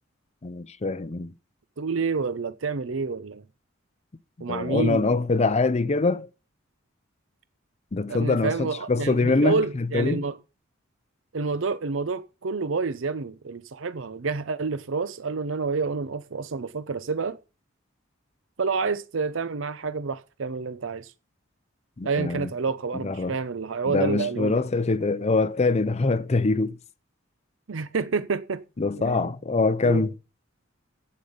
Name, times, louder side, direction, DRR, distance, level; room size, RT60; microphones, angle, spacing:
voice 1, 0.4-1.3 4.5-6.3 7.9-10.2 22.0-22.5 23.0-23.3 23.9-26.8 28.8-30.1, left 3 dB, 35° left, 0.6 m, -24 dB
voice 2, 1.8-3.4 4.4-5.1 8.1-10.4 11.3-17.4 18.6-21.1 22.0-24.6 27.7-28.6 29.0-29.3 29.8-30.0, right 4 dB, 70° right, 0.6 m, -28 dB
11.5 x 8.8 x 5.1 m
head